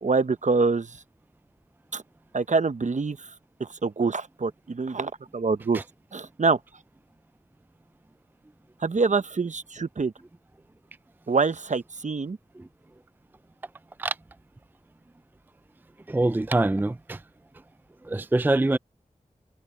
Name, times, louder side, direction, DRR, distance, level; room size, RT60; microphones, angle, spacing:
voice 1, 0.0-1.0 1.9-2.0 2.3-3.3 3.6-5.8 6.1-6.6 8.8-10.1 11.3-12.4, right 4 dB, 60° right, 0.9 m, -25 dB
voice 2, 16.1-17.2 18.0-18.8, right 2 dB, 15° right, 0.4 m, -24 dB
cardioid pair, 45°, 14 cm